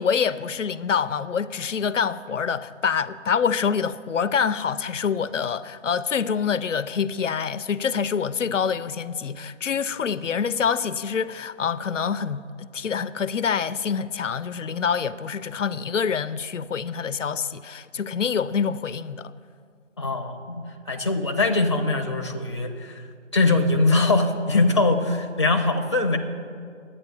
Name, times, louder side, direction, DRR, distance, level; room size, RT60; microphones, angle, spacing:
voice 1, 0.0-19.3, left 6 dB, 80° left, 0.5 m, -26 dB
voice 2, 20.0-23.0 23.3-26.2, left 2 dB, 25° left, 0.6 m, -22 dB
11.0 x 8.8 x 6.9 m
figure-of-eight pair, 160°, 37 cm